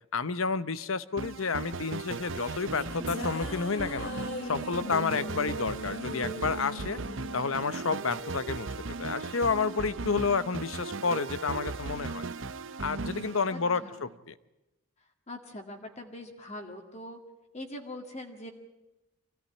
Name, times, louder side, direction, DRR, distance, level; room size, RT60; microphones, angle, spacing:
voice 1, 0.1-4.1 4.4-7.0 7.3-12.2 12.8-14.3, left 5 dB, 70° left, 15 dB, 0.9 m, -30 dB
sound 1, 1.2-14.1, right 3 dB, 60° right, 0.8 m, -37 dB
sound 2, 2.2-8.7, left 1 dB, 50° left, 3.7 m, -40 dB
voice 2, 13.5-14.0 15.3-17.2 17.5-18.5, left 1 dB, 30° left, 3 dB, 2.0 m, -42 dB
24.5 x 16.5 x 9.7 m, 0.96 s
head